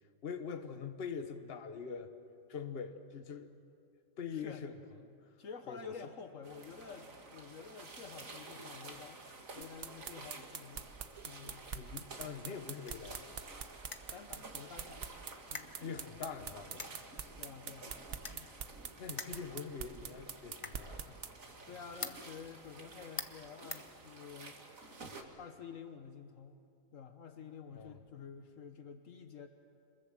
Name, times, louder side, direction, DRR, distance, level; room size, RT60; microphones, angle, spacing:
voice 1, 0.2-2.1 2.5-3.6 4.2-4.7 5.0-5.2 5.7-5.9 11.7-13.4 15.8-16.9 19.0-21.3 27.7-28.0, left 6 dB, 50° left, 8 dB, 1.3 m, -44 dB
voice 2, 4.3-4.7 5.4-9.2 9.5-10.9 11.2-11.6 14.1-15.0 15.5-15.7 17.4-18.0 18.3-18.5 21.7-25.0 25.4-26.6 26.9-29.5, left 6 dB, 75° left, 7 dB, 1.5 m, -50 dB
sound 1, 6.4-25.2, right 3 dB, 85° right, 2.4 m, -52 dB
sound 2, 9.6-21.3, right 6 dB, 50° right, 1.1 m, -44 dB
sound 3, 12.7-24.6, left 3 dB, 25° left, 1.0 m, -50 dB
27.0 x 21.5 x 7.7 m, 2.4 s
omnidirectional pair, 1.4 m